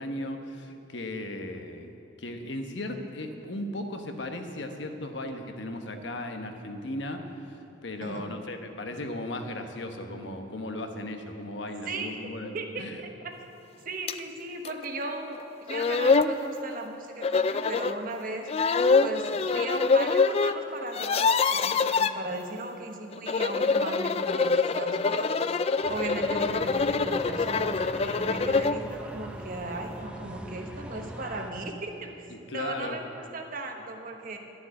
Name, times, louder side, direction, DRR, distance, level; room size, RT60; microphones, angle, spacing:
voice 1, 0.0-1.9 2.2-7.6 7.8-13.0 32.3-33.0, left 1 dB, 65° left, 5 dB, 1.1 m, -36 dB
voice 2, 8.0-8.3 11.8-12.1 12.5-13.3 13.8-18.5 19.0-25.6 25.9-32.3 32.5-34.4, right 2 dB, 45° right, 3 dB, 1.2 m, -37 dB
sound 1, 14.1-14.2 14.6-14.7 15.4-15.5 15.7-16.3 17.2-18.0 18.5-20.5 20.8-22.1 23.1-28.8, left 4 dB, 30° left, 0.3 m, -25 dB
sound 2, 25.8-31.5, right 1 dB, 5° right, 0.6 m, -41 dB
12.0 x 7.2 x 9.5 m, 2.8 s
head